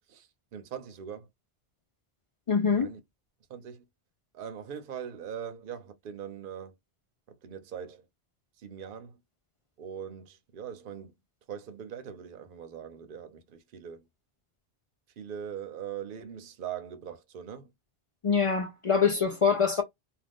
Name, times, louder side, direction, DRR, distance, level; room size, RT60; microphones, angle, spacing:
voice 1, 0.1-1.3 2.7-3.0 3.5-3.8 4.3-6.7 7.3-8.1 8.6-9.2 9.8-11.1 11.5-14.0 15.2-17.7, right 8 dB, 60° right, 0.8 m, -41 dB
voice 2, 2.5-2.9 18.2-19.8, left 6 dB, 50° left, 0.4 m, -24 dB
2.5 x 2.3 x 3.4 m
omnidirectional pair, 1.1 m